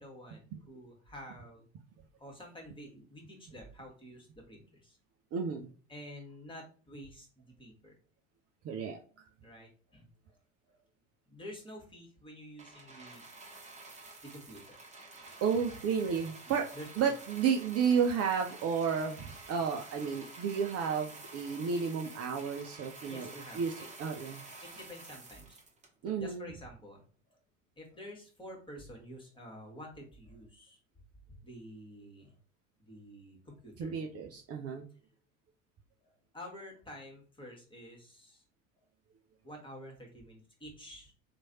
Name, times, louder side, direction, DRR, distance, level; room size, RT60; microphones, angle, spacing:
voice 1, 0.0-1.7 2.2-5.0 5.9-8.0 9.4-10.4 10.6-10.8 11.3-13.3 13.6-13.7 14.2-14.8 16.5-17.1 23.0-23.9 24.6-25.6 26.1-27.4 27.8-30.8 31.3-32.3 32.8-34.0 36.0-38.4 39.4-41.1, equal, 10° left, 1 dB, 1.6 m, -49 dB
voice 2, 5.3-5.7 8.6-9.0 15.4-16.7 17.0-23.7 24.0-24.4 26.0-26.5 33.8-34.9, right 6 dB, 35° right, 3 dB, 0.6 m, -32 dB
sound 1, 12.6-26.3 27.0-27.1, right 3 dB, 15° right, 1.2 m, -50 dB
3.1 x 2.5 x 4.1 m, 0.39 s
figure-of-eight pair, 70°, 41 cm